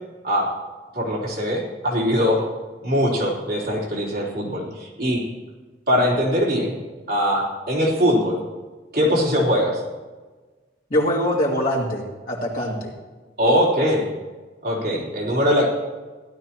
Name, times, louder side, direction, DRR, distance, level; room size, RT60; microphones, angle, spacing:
voice 1, 0.9-2.4 2.8-5.2 5.9-6.7 7.1-8.4 8.9-9.8 13.4-14.1 14.6-15.7, equal, 55° right, -5 dB, 3.5 m, -21 dB
voice 2, 10.9-12.9, equal, 50° left, -3 dB, 2.5 m, -23 dB
16.0 x 12.0 x 3.0 m, 1.3 s
head